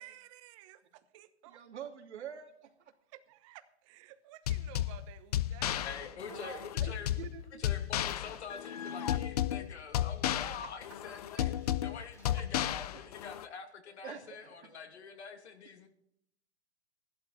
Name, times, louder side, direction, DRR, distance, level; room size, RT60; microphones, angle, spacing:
voice 1, 0.0-1.6 3.1-5.8 6.3-6.5, right 13 dB, 30° right, 1.0 m, -54 dB
voice 2, 1.4-2.9 6.3-7.7 11.3-11.5 12.9-13.1 14.0-14.8, right 8 dB, 80° right, 2.8 m, -47 dB
sound 1, 4.5-13.4, left 12 dB, 35° left, 0.5 m, -34 dB
voice 3, 5.8-7.1 7.6-11.5 11.8-15.9, left 6 dB, 75° left, 2.6 m, -46 dB
sound 2, 7.4-9.5 10.3-10.4 11.0-13.1, equal, 10° left, 1.9 m, -62 dB
14.5 x 12.0 x 4.2 m
hypercardioid pair, 155°, 34 cm